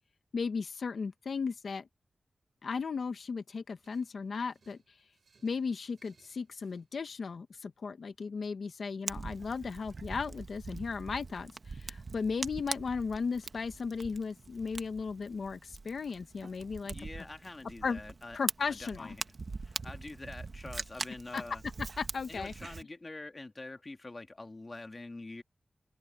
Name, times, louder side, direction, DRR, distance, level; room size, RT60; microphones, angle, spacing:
voice 1, 0.3-1.9 2.6-4.8 5.4-16.9 17.8-18.0 18.3-19.1 21.3-21.4 21.8-22.5, left 5 dB, 90° left, 1.0 m, -36 dB
sound 1, 3.8-6.9, right 5 dB, 75° right, 7.2 m, -69 dB
Fire, 9.1-22.8, right 4 dB, 55° right, 1.1 m, -42 dB
voice 2, 16.9-18.4 18.7-19.2 19.6-21.6 22.3-25.4, left 2 dB, 35° left, 1.7 m, -45 dB
wide cardioid pair, 105°, 0 cm